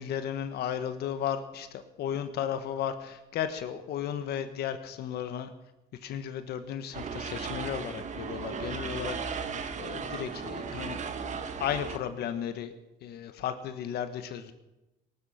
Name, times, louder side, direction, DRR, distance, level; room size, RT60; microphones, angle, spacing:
voice 1, 0.0-5.5 6.0-9.2 9.8-11.0 11.6-12.7 13.0-14.5, left 9 dB, 70° left, 10 dB, 1.5 m, -34 dB
sound 1, 6.9-12.0, right 5 dB, 45° right, 1.4 m, -36 dB
19.0 x 12.0 x 5.8 m, 0.96 s
cardioid pair, 110°, 17 cm